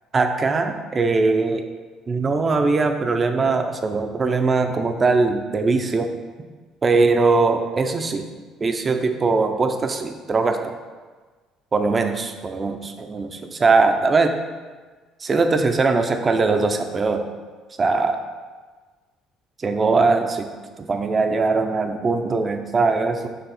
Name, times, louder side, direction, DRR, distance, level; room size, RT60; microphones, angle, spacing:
voice 1, 0.1-1.7 2.1-6.1 6.8-8.3 8.6-10.7 11.7-14.4 15.2-17.2 17.8-18.2 19.6-20.5 20.8-23.3, right 3 dB, 30° right, 6 dB, 0.6 m, -21 dB
6.9 x 3.1 x 5.8 m, 1.4 s
cardioid pair, 110°, 0 cm